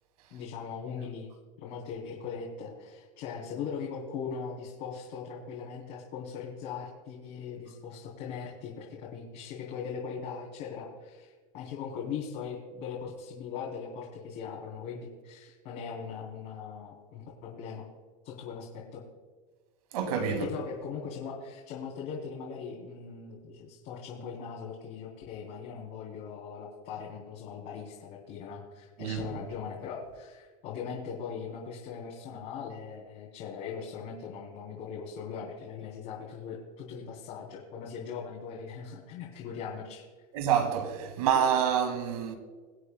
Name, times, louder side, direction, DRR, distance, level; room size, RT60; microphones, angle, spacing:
voice 1, 0.3-1.3 1.6-17.9 18.2-19.0 20.3-40.0, left 6 dB, 55° left, 3.5 m, -40 dB
voice 2, 19.9-20.5 29.0-29.2 40.3-42.3, right 8 dB, 85° right, 2.0 m, -27 dB
24.5 x 8.3 x 2.2 m
supercardioid pair, 145°, 18 cm